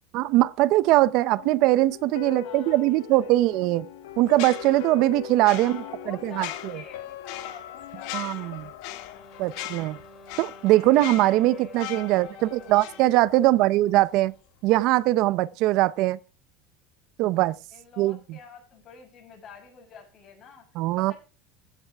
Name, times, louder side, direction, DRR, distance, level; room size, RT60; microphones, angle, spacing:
voice 1, 0.1-3.9 4.2-6.7 8.1-8.6 9.4-10.0 10.4-14.3 14.6-16.2 17.2-17.6 18.0-18.4 20.8-21.1, right 17 dB, 65° right, 0.6 m, -21 dB
sound 1, 1.4-10.3 10.7-10.8, left 9 dB, 90° left, 1.1 m, -41 dB
voice 2, 2.3-3.3 5.6-9.3 12.1-12.8 13.4-13.6 17.7-20.7 20.9-21.1, left 6 dB, 40° left, 6.4 m, -47 dB
sound 2, 4.3-13.7 14.0-14.2, left 14 dB, 70° left, 1.6 m, -40 dB
Wind instrument woodwind instrument, 8.9-13.4, left 2 dB, 10° left, 4.4 m, -49 dB
15.0 x 8.1 x 3.5 m
supercardioid pair, 110°, 0 cm